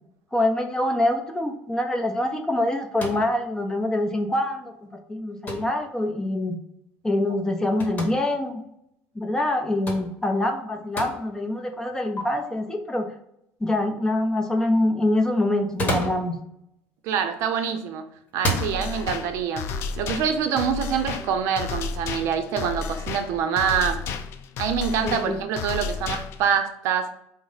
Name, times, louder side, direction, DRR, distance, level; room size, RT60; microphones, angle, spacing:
voice 1, 0.3-4.7 5.1-6.6 7.0-8.6 9.1-13.1 13.6-16.4 18.7-18.8 25.0-25.4, left 1 dB, 10° left, 4 dB, 0.6 m, -25 dB
sound 1, 3.0-3.3 5.5-5.8 7.8-8.1 9.9-10.1 11.0-11.2 12.2-12.3 15.6-16.3 17.4-17.7 18.3-18.7, equal, 30° left, 1.3 m, -28 dB
voice 2, 17.0-18.0 18.3-19.6 20.0-24.1 24.6-27.1, right 7 dB, 70° right, 7 dB, 0.5 m, -25 dB
sound 2, 18.6-26.6, left 5 dB, 55° left, 0.4 m, -32 dB
4.8 x 2.0 x 3.9 m, 0.76 s
supercardioid pair, 110°, 5 cm